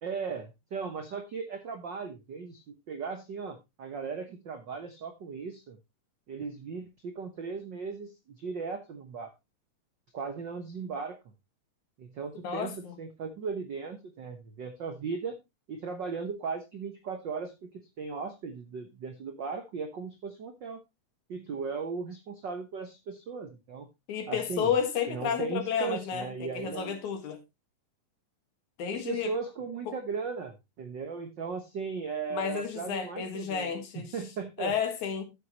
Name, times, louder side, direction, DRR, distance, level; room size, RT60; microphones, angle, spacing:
voice 1, 0.0-5.8 6.3-9.3 10.1-11.2 12.0-15.4 15.7-17.7 18.0-20.8 21.3-23.9 24.3-24.7 25.1-27.0 28.9-34.7, right 5 dB, 90° right, 1.0 m, -37 dB
voice 2, 12.4-13.0 24.1-27.4 28.8-29.3 29.9-30.0 32.3-34.1 34.6-35.3, left 7 dB, 65° left, 2.9 m, -31 dB
13.0 x 7.9 x 2.9 m
omnidirectional pair, 3.8 m